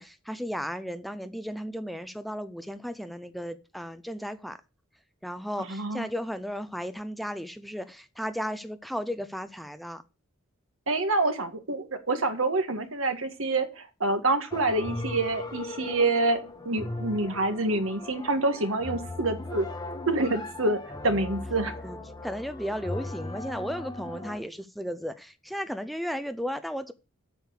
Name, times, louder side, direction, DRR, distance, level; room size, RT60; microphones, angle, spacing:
voice 1, 0.0-4.6 5.2-10.0 21.8-22.0 22.2-26.9, equal, ahead, 0.5 m, -35 dB
voice 2, 5.6-6.1 10.9-16.4 16.6-19.6 20.1-20.8 21.0-21.7, right 2 dB, 75° right, 1.7 m, -27 dB
sound 1, 14.5-24.4, left 2 dB, 20° left, 1.2 m, -38 dB
8.0 x 6.7 x 8.1 m
head